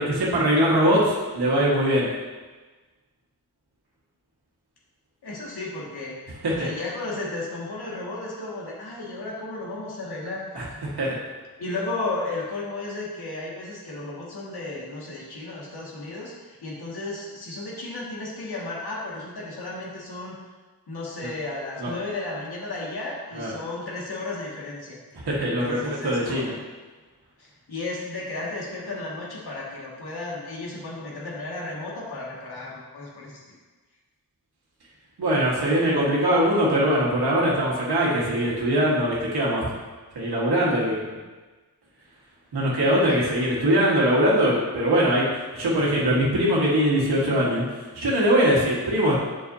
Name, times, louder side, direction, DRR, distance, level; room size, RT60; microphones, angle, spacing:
voice 1, 0.0-2.1 6.4-6.7 10.5-11.2 21.8-21.9 23.3-23.5 25.2-26.5 35.2-39.7 40.1-41.2 42.5-49.2, equal, 90° right, -6 dB, 1.6 m, -22 dB
voice 2, 5.2-6.1 6.5-10.4 11.6-20.4 20.9-25.0 25.6-26.6 27.4-33.4, left 2 dB, 85° left, -5 dB, 2.0 m, -34 dB
8.3 x 6.3 x 2.7 m, 1.3 s
wide cardioid pair, 145°, 38 cm